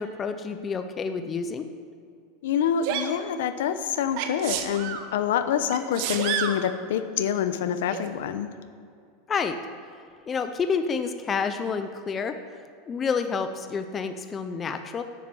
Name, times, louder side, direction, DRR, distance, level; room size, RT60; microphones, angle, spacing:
voice 1, 0.0-1.6 9.3-9.6 10.3-12.3 12.9-15.0, left 5 dB, 15° left, 8 dB, 0.5 m, -29 dB
voice 2, 2.4-8.5, left 8 dB, 75° left, 11 dB, 0.9 m, -26 dB
Sneeze, 2.8-3.1 4.2-5.0 5.7-6.6 7.9-8.0, right 9 dB, 45° right, 1.0 m, -29 dB
11.5 x 8.6 x 7.6 m, 2.3 s
supercardioid pair, 175°, 0 cm